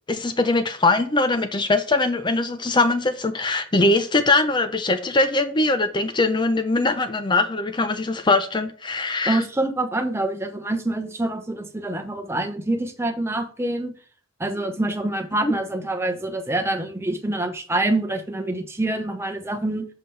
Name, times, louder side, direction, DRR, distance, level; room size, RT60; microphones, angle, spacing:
voice 1, 0.1-9.4 15.4-15.5, left 2 dB, 25° left, 0.6 m, -21 dB
voice 2, 9.2-13.9 14.4-19.9, right 2 dB, 15° right, 1.0 m, -26 dB
7.4 x 5.8 x 3.3 m
head